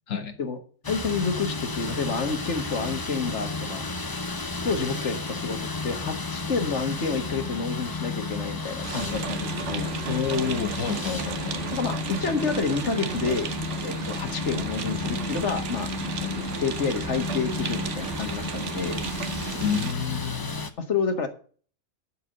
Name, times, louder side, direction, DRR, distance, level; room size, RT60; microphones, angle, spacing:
voice 1, 0.1-0.4 10.1-11.6 19.6-20.7, left 7 dB, 80° left, 6 dB, 1.7 m, -29 dB
sound 1, 0.8-20.7, left 4 dB, 20° left, 0.7 m, -33 dB
voice 2, 0.9-3.8 4.6-5.6 5.8-9.9 11.7-13.5 13.8-15.9 16.2-19.0 20.9-21.3, left 4 dB, 60° left, 7 dB, 1.9 m, -29 dB
sound 2, 6.3-12.7, left 3 dB, 45° left, 1.4 m, -43 dB
sound 3, 8.8-19.9, right 7 dB, 65° right, 1.2 m, -34 dB
11.5 x 4.8 x 7.8 m, 0.42 s
omnidirectional pair, 1.3 m